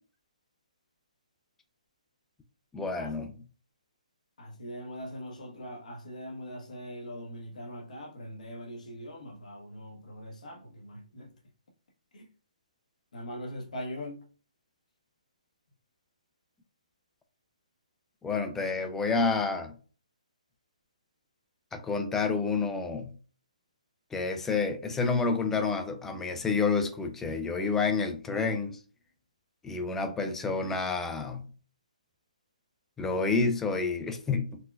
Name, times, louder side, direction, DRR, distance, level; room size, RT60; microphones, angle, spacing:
voice 1, 2.7-3.3 18.2-19.7 21.7-23.1 24.1-28.8 29.6-31.4 33.0-34.6, left 4 dB, 10° left, 0.3 m, -29 dB
voice 2, 4.4-11.3 12.1-12.3 13.1-14.2, equal, 70° left, 0.9 m, -41 dB
4.2 x 2.2 x 2.2 m
hypercardioid pair, 145°, 4 cm